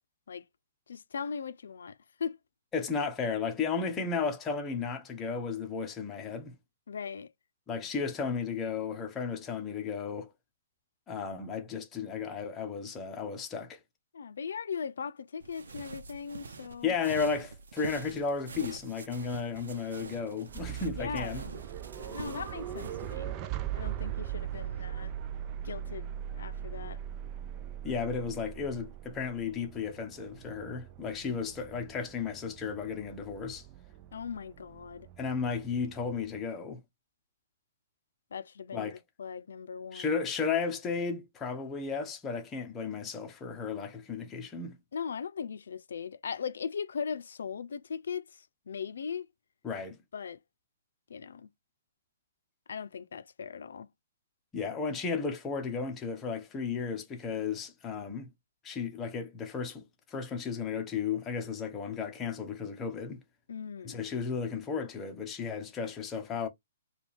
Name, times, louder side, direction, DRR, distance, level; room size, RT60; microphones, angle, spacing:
voice 1, 0.9-2.4 6.9-7.3 14.1-16.9 21.0-21.5 22.0-23.3 23.7-25.1 25.6-27.0 34.1-35.1 38.3-40.2 44.9-49.3 50.1-50.4 51.1-51.5 52.7-53.9 63.5-64.0, left 6 dB, 75° left, 0.5 m, -39 dB
voice 2, 2.7-6.5 7.7-10.3 11.1-13.8 16.8-21.4 27.8-33.7 35.2-36.8 38.7-39.0 39.9-44.8 49.6-50.0 54.5-58.3 58.6-63.2 63.8-66.5, left 5 dB, 15° left, 0.8 m, -34 dB
sound 1, 15.4-23.1, right 4 dB, 80° right, 0.8 m, -46 dB
sound 2, 20.5-36.4, right 11 dB, 25° right, 0.4 m, -40 dB
4.4 x 2.4 x 3.4 m
hypercardioid pair, 160°, 0 cm